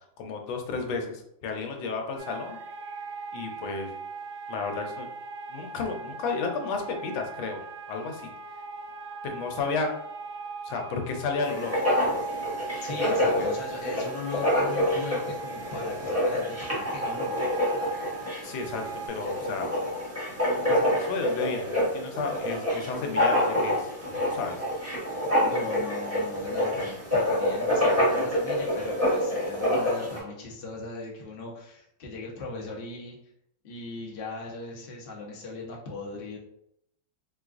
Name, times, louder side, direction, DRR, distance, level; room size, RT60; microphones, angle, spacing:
voice 1, 0.2-2.6 3.3-3.9 4.5-5.1 5.5-7.6 7.9-8.3 9.2-9.9 10.6-11.7 13.0-13.5 18.4-19.7 20.7-23.9 24.3-24.6, left 4 dB, 90° left, 3 dB, 1.4 m, -32 dB
sound 1, 2.2-19.1, right 4 dB, 70° right, 1.1 m, -40 dB
Writing, 11.4-30.2, left 1 dB, 15° right, 0.5 m, -27 dB
voice 2, 12.8-17.3 25.4-33.2 33.6-36.4, left 3 dB, 65° left, -2 dB, 0.5 m, -38 dB
4.2 x 2.3 x 2.4 m, 0.76 s
omnidirectional pair, 2.1 m